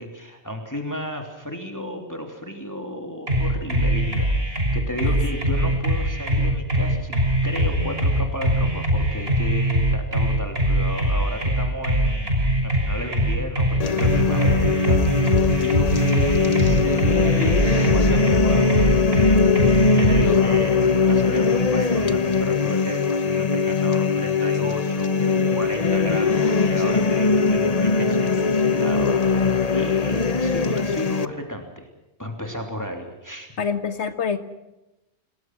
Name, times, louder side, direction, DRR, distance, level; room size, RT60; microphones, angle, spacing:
voice 1, 0.0-19.4 19.9-31.9 32.2-33.6, equal, 15° left, 3 dB, 3.2 m, -33 dB
sound 1, 3.3-20.2, right 1 dB, 60° right, 7.0 m, -22 dB
sound 2, 13.8-31.3, left 4 dB, 35° left, 1.0 m, -20 dB
voice 2, 33.6-34.4, left 6 dB, 80° left, 8 dB, 1.9 m, -26 dB
28.5 x 20.5 x 6.1 m, 0.96 s
omnidirectional pair, 1.1 m